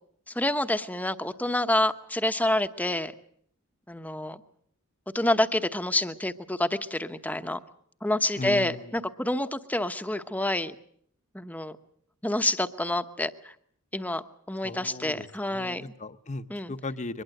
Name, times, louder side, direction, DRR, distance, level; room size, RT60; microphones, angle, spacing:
voice 1, 0.3-3.1 3.9-4.4 5.1-7.6 8.0-10.8 11.3-11.8 12.2-13.5 13.9-15.9 16.5-16.7, left 1 dB, 5° left, 9 dB, 1.0 m, -28 dB
voice 2, 8.4-8.8 14.6-15.3 15.5-17.2, left 3 dB, 35° left, 11 dB, 0.9 m, -37 dB
23.5 x 21.0 x 7.8 m, 0.64 s
head